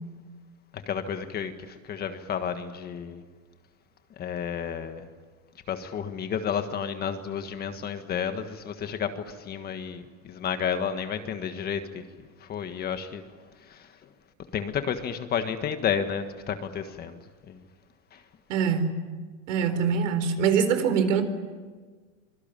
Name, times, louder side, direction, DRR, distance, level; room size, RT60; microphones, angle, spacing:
voice 1, 0.7-3.2 4.2-5.1 5.7-12.0 12.4-13.2 13.6-13.9 14.5-17.2 17.5-17.6 18.1-18.2, left 7 dB, 25° left, 8 dB, 1.5 m, -31 dB
voice 2, 18.5-19.0 19.5-21.2, right 6 dB, 65° right, 9 dB, 4.3 m, -23 dB
25.0 x 23.0 x 9.1 m, 1.4 s
supercardioid pair, 150°, 39 cm